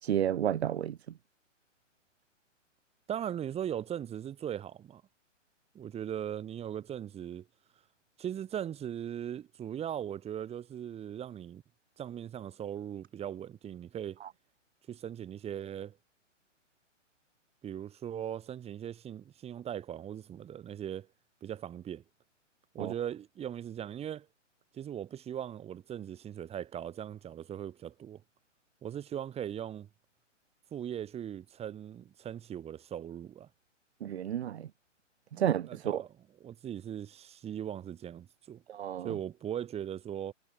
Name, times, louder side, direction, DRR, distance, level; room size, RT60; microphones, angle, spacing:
voice 1, 0.0-1.0 14.2-14.3 22.8-22.9 34.0-34.7 35.3-36.0 38.7-39.1, right 10 dB, 55° right, 2.1 m, -31 dB
voice 2, 3.1-5.0 5.7-7.5 8.2-11.6 12.0-14.2 14.9-16.0 17.6-21.1 21.4-22.0 22.7-24.3 24.7-28.2 28.8-29.9 30.7-33.5 35.3-36.1 36.4-38.6 39.0-40.3, right 10 dB, 15° right, 4.8 m, -39 dB
hypercardioid pair, 130°, 38 cm